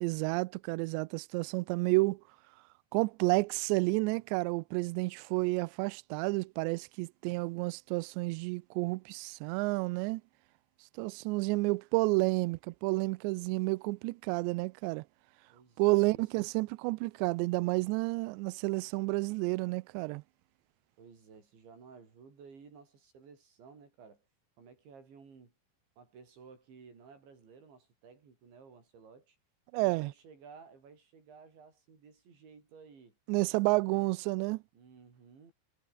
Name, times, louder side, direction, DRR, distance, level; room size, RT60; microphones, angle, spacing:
voice 1, 0.0-2.2 2.9-10.2 11.0-15.0 15.8-20.2 29.7-30.1 33.3-34.6, right 25 dB, 85° right, 2.5 m, -30 dB
voice 2, 15.5-16.5 21.0-24.3 24.6-25.5 26.0-29.4 29.8-33.2 33.7-34.1 34.7-35.5, right 5 dB, 65° right, 8.8 m, -55 dB
omnidirectional pair, 5.6 m